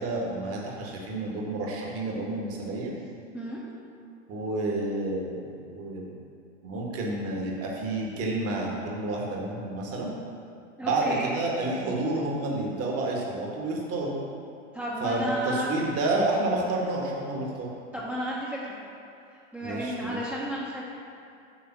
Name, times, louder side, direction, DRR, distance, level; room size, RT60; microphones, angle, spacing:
voice 1, 0.0-2.9 4.3-6.2 6.6-10.1 10.8-14.2 15.0-17.7 19.6-20.2, right 2 dB, 40° right, -2 dB, 1.6 m, -30 dB
voice 2, 10.8-11.3 14.7-15.7 17.9-18.8 19.5-20.8, equal, 5° right, -8 dB, 1.1 m, -32 dB
8.5 x 3.4 x 6.0 m, 2.5 s
hypercardioid pair, 100°, 38 cm